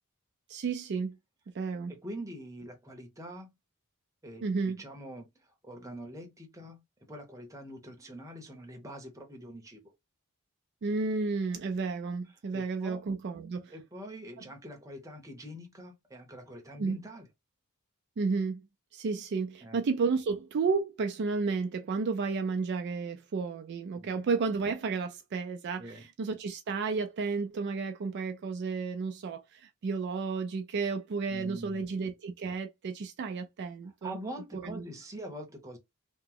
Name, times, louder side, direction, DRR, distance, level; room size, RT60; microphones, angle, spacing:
voice 1, 0.5-1.2 1.5-1.9 4.4-4.8 10.8-13.8 16.8-17.0 18.2-18.6 18.9-34.2 34.5-34.8, right 4 dB, 50° right, 0.3 m, -32 dB
voice 2, 1.9-3.5 4.2-5.3 5.6-6.8 7.1-9.8 12.5-13.0 13.7-17.3 19.6-19.8 24.0-24.2 25.8-26.0 31.3-31.9 34.0-35.8, right 1 dB, 15° right, 0.7 m, -44 dB
2.9 x 2.0 x 3.6 m
head